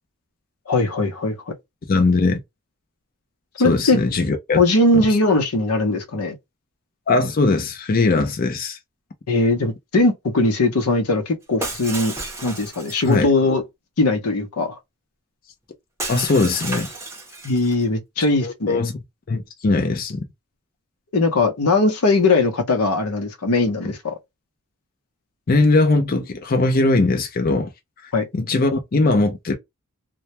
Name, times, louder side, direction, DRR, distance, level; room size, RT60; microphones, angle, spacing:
voice 1, 0.7-1.5 3.6-4.0 4.6-6.4 9.3-12.2 12.4-13.6 14.0-14.8 17.4-18.8 21.1-24.1 28.1-28.3, left 2 dB, 90° left, 0.7 m, -20 dB
voice 2, 1.9-2.4 3.6-4.6 4.9-5.0 7.1-8.8 13.1-13.3 16.1-16.9 18.4-18.9 19.3-20.2 25.5-27.7 28.0-29.5, left 3 dB, 40° left, 0.5 m, -20 dB
Shatter, 11.6-13.2 16.0-17.8, right 2 dB, 15° right, 0.6 m, -32 dB
2.2 x 2.1 x 2.8 m
head